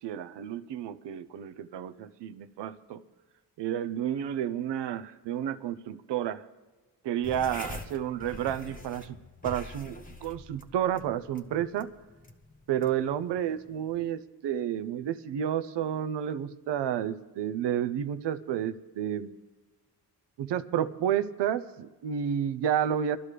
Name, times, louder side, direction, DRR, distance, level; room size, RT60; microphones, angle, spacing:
voice 1, 0.0-3.0 3.6-6.4 7.0-9.2 9.4-11.9 12.7-19.3 20.4-23.2, right 10 dB, 90° right, 13 dB, 0.6 m, -31 dB
sound 1, 7.2-14.1, left 2 dB, 20° left, 1.0 m, -45 dB
20.5 x 12.0 x 3.3 m, 1.2 s
cardioid pair, 105°, 40 cm